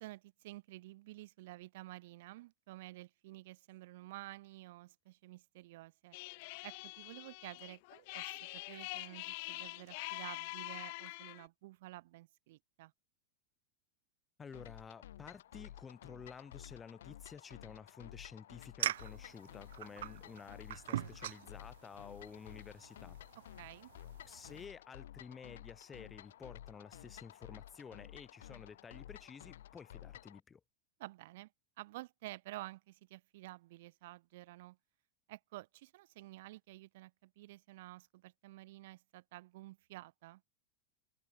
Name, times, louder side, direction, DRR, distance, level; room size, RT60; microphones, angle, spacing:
voice 1, 0.0-6.2 6.6-12.9 23.6-23.9 31.0-31.5 31.8-34.8 35.3-40.5, right 18 dB, 60° right, 3.4 m, -51 dB
sound 1, 6.1-11.5, left 27 dB, 50° left, 1.4 m, -45 dB
voice 2, 14.4-23.2 24.3-30.6, left 6 dB, 15° left, 5.8 m, -52 dB
sound 2, 14.5-30.4, left 12 dB, 90° left, 1.8 m, -53 dB
sound 3, 18.8-24.7, right 13 dB, 80° right, 4.1 m, -43 dB
supercardioid pair, 165°, 0 cm